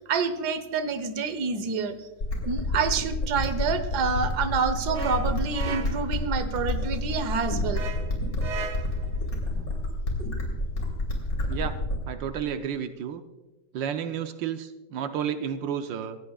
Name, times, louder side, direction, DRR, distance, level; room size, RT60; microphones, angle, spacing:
voice 1, 0.0-2.1 2.4-7.8, right 5 dB, 65° right, 11 dB, 1.6 m, -28 dB
sound 1, 2.2-12.2, left 1 dB, 50° left, 3.4 m, -29 dB
sound 2, 4.9-6.2 7.7-9.1, right 5 dB, 50° right, 1.0 m, -36 dB
voice 2, 12.1-13.2 13.7-16.2, right 8 dB, 85° right, 7 dB, 1.5 m, -31 dB
25.0 x 15.5 x 2.4 m, 1.1 s
omnidirectional pair, 1.9 m